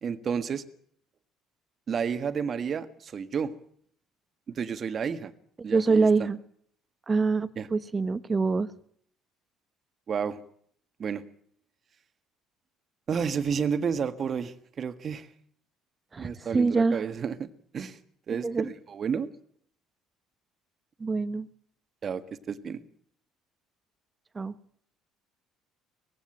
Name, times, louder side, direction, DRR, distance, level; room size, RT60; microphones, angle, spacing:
voice 1, 0.0-0.6 1.9-3.6 4.5-5.3 5.6-6.1 7.6-7.7 10.1-10.4 11.0-11.2 13.1-15.3 16.2-18.0 18.3-19.3 22.0-22.8, right 6 dB, 45° right, 11 dB, 1.6 m, -31 dB
voice 2, 5.6-6.4 7.1-8.7 16.1-17.0 18.4-18.7 21.0-21.5 24.3-24.5, right 4 dB, 30° right, 14 dB, 1.3 m, -25 dB
19.5 x 16.0 x 8.9 m, 0.64 s
hypercardioid pair, 65°, 0 cm